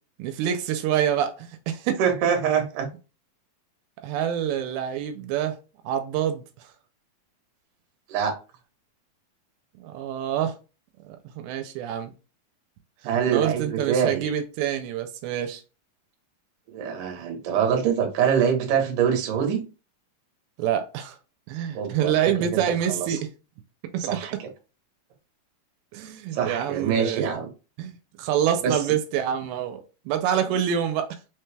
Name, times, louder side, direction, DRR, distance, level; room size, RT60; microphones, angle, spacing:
voice 1, 0.2-2.0 4.0-5.6 5.8-6.7 9.8-10.5 11.0-12.1 13.3-15.6 20.6-21.2 21.5-23.3 23.9-24.4 25.9-27.3 27.8-31.2, right 9 dB, 85° right, 2.4 m, -27 dB
voice 2, 2.0-2.9 8.1-8.3 13.1-14.3 16.7-19.6 21.7-23.2 24.0-24.5 26.3-27.5 28.6-28.8, right 7 dB, 70° right, 2.3 m, -25 dB
5.6 x 2.2 x 3.2 m
omnidirectional pair, 4.3 m